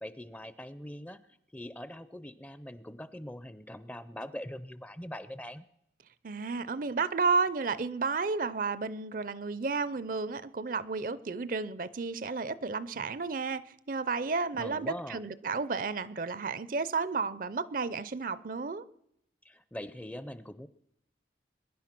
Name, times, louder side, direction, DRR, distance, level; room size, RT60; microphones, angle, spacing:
voice 1, 0.0-1.2 1.5-5.7 14.5-15.2 19.4-20.7, equal, 10° left, 14 dB, 0.5 m, -42 dB
voice 2, 6.2-18.8, right 4 dB, 45° right, 17 dB, 0.5 m, -32 dB
22.5 x 10.5 x 5.9 m, 0.80 s
head